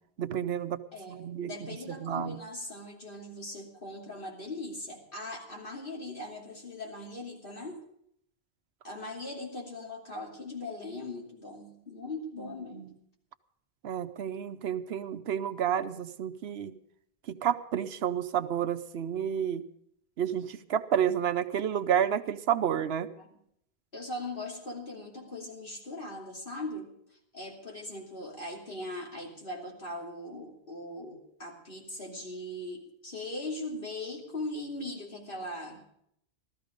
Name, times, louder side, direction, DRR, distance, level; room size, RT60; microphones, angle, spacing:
voice 1, 0.2-0.8 1.1-1.5 2.0-2.4 12.4-12.9 13.8-16.7 17.3-19.6 20.2-23.1, right 9 dB, 80° right, 11 dB, 1.0 m, -30 dB
voice 2, 0.9-7.8 8.8-12.9 15.3-15.4 23.2-23.3 23.9-26.9 27.3-35.8, left 2 dB, 55° left, -1 dB, 3.0 m, -40 dB
15.0 x 13.5 x 5.2 m, 0.70 s
omnidirectional pair, 1.1 m